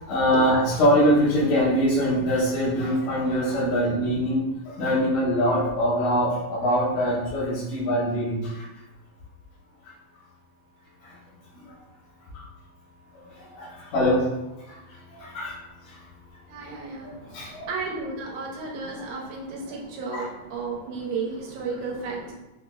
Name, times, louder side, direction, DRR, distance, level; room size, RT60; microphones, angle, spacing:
voice 1, 0.1-8.7 12.3-12.4 13.6-14.2 14.7-14.8 15.1-15.6 15.9-16.0 17.3-17.7 19.0-19.1 20.1-20.3, equal, 90° left, -9 dB, 2.5 m, -23 dB
voice 2, 16.5-22.3, right 4 dB, 85° right, -3 dB, 2.1 m, -33 dB
5.7 x 2.0 x 2.3 m, 1.0 s
omnidirectional pair, 3.4 m